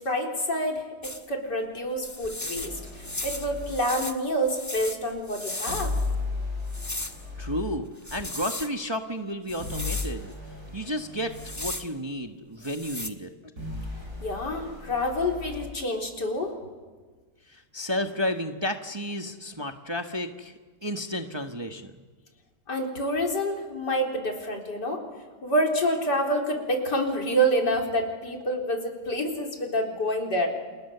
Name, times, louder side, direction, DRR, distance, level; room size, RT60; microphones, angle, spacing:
voice 1, 0.0-5.9 14.2-16.6 22.7-25.0 25.4-30.5, equal, 80° left, 1 dB, 4.6 m, -27 dB
sound 1, 1.0-1.2 2.0-6.1 6.7-7.2 8.0-8.7 9.5-10.1 11.2-11.9 12.6-13.1, left 1 dB, 10° left, 1.1 m, -36 dB
sound 2, 2.5-3.8 5.7-7.8 9.6-11.7 13.6-15.7, left 3 dB, 65° right, 8.0 m, -35 dB
voice 2, 7.4-10.3 10.7-13.3 17.5-21.9, equal, 20° right, 5 dB, 1.1 m, -32 dB
29.0 x 29.0 x 6.9 m, 1.4 s
omnidirectional pair, 1.8 m